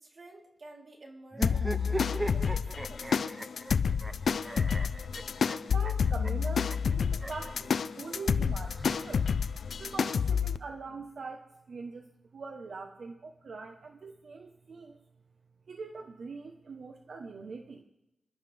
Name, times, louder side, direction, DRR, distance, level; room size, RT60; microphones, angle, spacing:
voice 1, 0.0-3.3, right 2 dB, 50° right, -1 dB, 3.9 m, -52 dB
sound 1, 1.3-7.5 8.5-9.6, right 1 dB, 15° right, 0.8 m, -39 dB
sound 2, 1.4-10.6, left 6 dB, 75° left, 0.5 m, -29 dB
voice 2, 5.6-9.3 9.7-12.1 12.3-15.0 15.7-17.8, right 4 dB, 70° right, 4 dB, 1.2 m, -43 dB
26.5 x 12.0 x 3.6 m, 0.92 s
wide cardioid pair, 90°, 0 cm